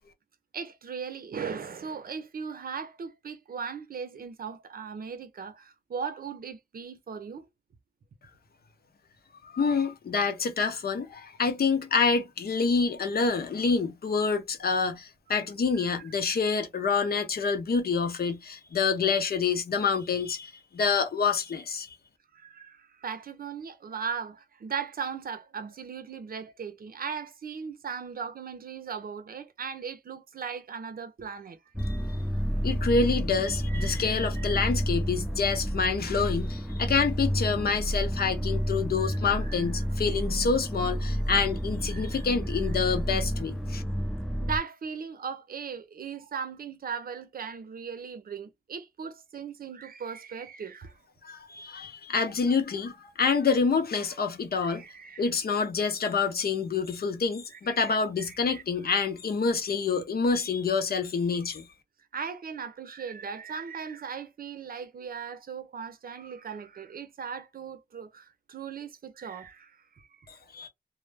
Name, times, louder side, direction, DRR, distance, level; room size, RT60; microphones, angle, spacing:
voice 1, 0.5-7.4 15.7-16.0 16.3-16.4 22.3-31.6 33.4-34.5 39.0-39.7 41.9-42.3 44.4-50.9 54.6-55.3 57.6-58.6 62.1-70.3, right 6 dB, 65° right, 0.6 m, -38 dB
voice 2, 9.4-21.9 31.8-32.0 32.6-43.8 51.2-54.8 55.2-61.7 70.5-70.7, left 5 dB, 70° left, 0.6 m, -27 dB
sound 1, 31.8-44.6, equal, ahead, 0.4 m, -30 dB
2.1 x 2.0 x 3.2 m
wide cardioid pair, 70°, 16 cm